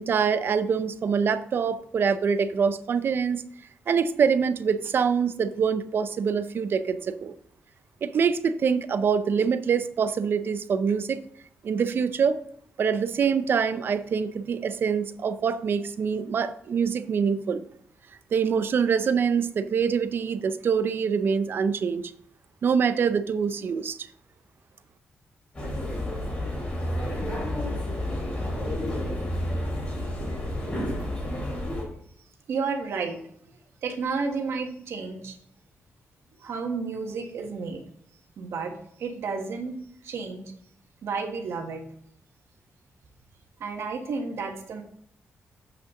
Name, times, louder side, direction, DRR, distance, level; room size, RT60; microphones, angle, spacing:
voice 1, 0.0-3.4 3.9-7.3 8.0-11.2 11.6-12.4 12.8-17.6 18.3-22.0 22.6-24.0, right 6 dB, 55° right, 11 dB, 0.6 m, -25 dB
sound 1, 25.5-31.8, left 1 dB, 30° left, 3.6 m, -30 dB
voice 2, 32.5-33.2 33.8-35.3 36.4-37.8 38.4-38.7 39.0-39.8 40.0-40.4 41.0-41.8 43.6-44.8, right 4 dB, 75° right, 3 dB, 1.6 m, -31 dB
8.0 x 5.8 x 3.8 m, 0.67 s
wide cardioid pair, 125°, 4 cm